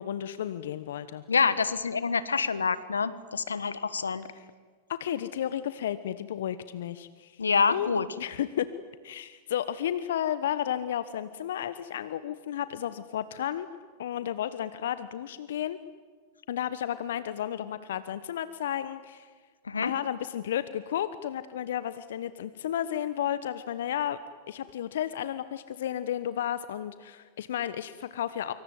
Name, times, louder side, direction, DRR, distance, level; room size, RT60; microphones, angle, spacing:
voice 1, 0.0-1.2 4.3-4.4 4.9-7.4 7.7-7.9 8.2-8.7 9.0-13.7 14.0-15.8 16.5-19.3 19.8-24.2 24.5-28.5, left 10 dB, 70° left, 14 dB, 1.1 m, -32 dB
voice 2, 1.3-4.2 7.4-8.1 19.7-19.9, left 5 dB, 85° left, 16 dB, 1.4 m, -26 dB
25.5 x 24.5 x 9.5 m, 1.5 s
figure-of-eight pair, 95°, 0 cm